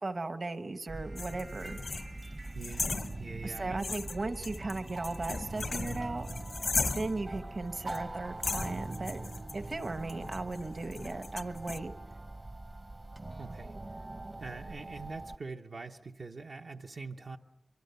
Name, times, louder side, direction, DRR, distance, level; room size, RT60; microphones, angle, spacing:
voice 1, 0.0-1.8 3.4-6.3 6.8-9.2 9.5-11.9, right 3 dB, 60° right, 9 dB, 1.1 m, -37 dB
sound 1, 0.9-15.4, right 2 dB, 40° right, 0.7 m, -42 dB
sound 2, 1.2-3.5 3.8-7.3 7.9-8.0 8.4-11.8, left 3 dB, 80° left, 0.8 m, -37 dB
voice 2, 2.5-3.8 13.4-13.8 14.4-17.4, right 4 dB, 90° right, 2 dB, 1.0 m, -44 dB
24.0 x 23.5 x 6.8 m, 1.0 s
wide cardioid pair, 80°, 0 cm